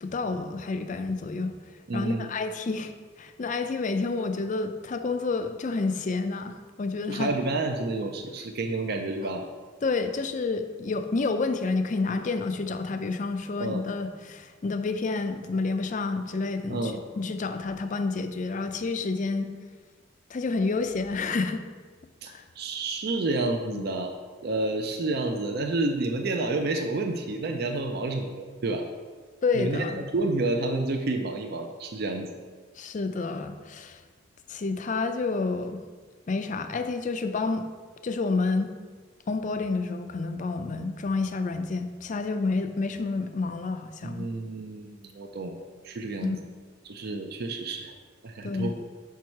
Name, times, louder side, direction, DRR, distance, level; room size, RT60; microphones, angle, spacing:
voice 1, 0.0-1.5 1.9-7.3 9.8-19.5 20.3-21.6 22.3-22.4 23.7-23.8 29.4-30.0 32.8-34.0 34.5-35.8 36.3-37.6 38.0-38.7 39.3-44.3 46.2-46.4 48.4-48.7, left 3 dB, 40° left, 8 dB, 0.4 m, -29 dB
voice 2, 1.9-2.3 7.1-9.5 13.6-13.8 16.7-17.0 22.2-24.1 24.4-28.9 29.5-32.3 44.0-46.3 46.8-47.9 48.2-48.7, right 2 dB, 50° right, 4 dB, 0.5 m, -30 dB
5.2 x 4.6 x 5.8 m, 1.5 s
head